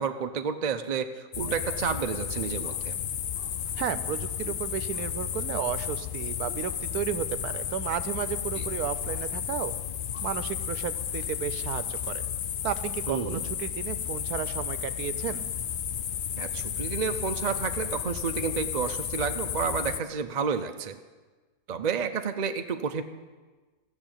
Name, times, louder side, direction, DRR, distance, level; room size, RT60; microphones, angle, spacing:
voice 1, 0.0-3.0 8.6-8.7 13.1-13.4 16.4-21.0 21.7-23.0, right 6 dB, 55° right, 7 dB, 0.4 m, -30 dB
sound 1, 1.3-20.0, left 9 dB, 85° left, 0.4 m, -33 dB
voice 2, 3.8-9.7 10.2-12.2 12.6-15.5, right 10 dB, 90° right, 13 dB, 1.2 m, -33 dB
15.0 x 6.8 x 8.9 m, 1.3 s
omnidirectional pair, 1.6 m